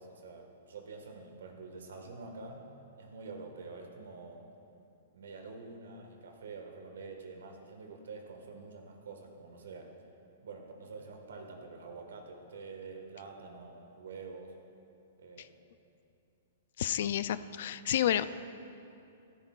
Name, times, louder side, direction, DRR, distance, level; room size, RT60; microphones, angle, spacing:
voice 1, 0.0-2.7 3.0-4.5 5.1-9.9 10.4-14.5 15.2-15.5, right 4 dB, 85° right, 3 dB, 1.6 m, -47 dB
voice 2, 16.8-18.3, left 11 dB, 60° left, 14 dB, 0.4 m, -30 dB
14.0 x 13.0 x 2.4 m, 2.7 s
hypercardioid pair, 145°, 0 cm